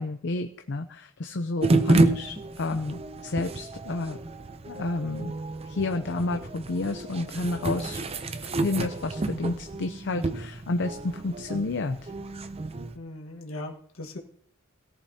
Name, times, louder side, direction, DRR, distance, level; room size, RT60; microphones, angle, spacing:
voice 1, 0.0-4.2 4.7-5.3 5.6-8.0 8.4-12.1, left 2 dB, 60° left, 6 dB, 0.6 m, -31 dB
sound 1, 1.6-13.0, right 2 dB, 30° right, 0.5 m, -29 dB
voice 2, 12.9-14.2, left 2 dB, 75° left, 2 dB, 1.5 m, -39 dB
17.0 x 11.0 x 2.8 m, 0.65 s
head